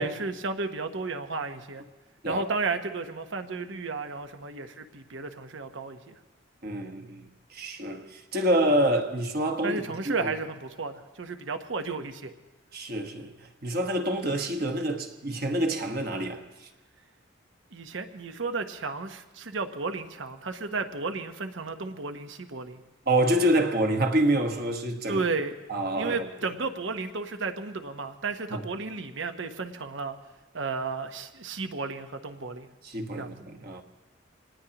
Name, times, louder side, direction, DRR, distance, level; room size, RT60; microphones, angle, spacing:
voice 1, 0.0-1.8 2.3-6.2 9.6-12.3 17.7-22.8 25.1-25.5 26.0-30.1 30.5-32.7 33.2-33.4, right 4 dB, 65° right, 0.9 m, -33 dB
voice 2, 6.6-10.3 12.7-13.3 13.6-16.7 23.1-25.2 25.7-26.3 28.5-28.6 32.8-33.8, right 1 dB, 50° right, 1.2 m, -27 dB
26.0 x 19.0 x 2.9 m
head